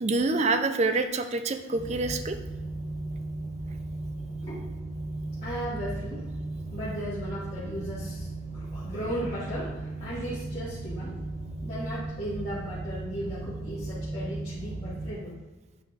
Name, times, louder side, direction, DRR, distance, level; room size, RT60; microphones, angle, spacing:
voice 1, 0.0-2.4, right 3 dB, 35° right, 8 dB, 0.4 m, -26 dB
sound 1, 1.7-15.1, right 2 dB, 5° right, 1.6 m, -36 dB
voice 2, 5.4-6.2 6.7-8.3 8.5-11.2 11.6-15.4, equal, 30° left, -11 dB, 1.8 m, -36 dB
8.4 x 4.4 x 3.9 m, 1.2 s
head